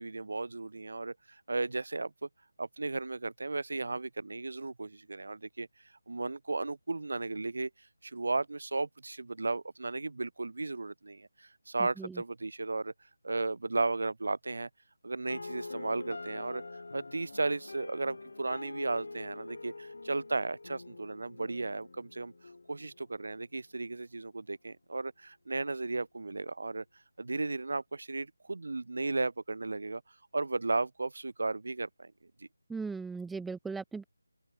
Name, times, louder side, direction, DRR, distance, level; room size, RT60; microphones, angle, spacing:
voice 1, 0.0-2.3 2.6-5.7 6.1-7.7 8.0-12.9 13.2-14.7 15.0-22.3 22.7-26.8 27.2-30.0 30.3-32.1 32.4-32.5, right 3 dB, 60° right, 4.4 m, -35 dB
sound 1, 15.3-23.3, left 3 dB, 60° left, 5.3 m, -45 dB
voice 2, 32.7-34.0, right 4 dB, ahead, 0.3 m, -38 dB
figure-of-eight pair, 175°, 0 cm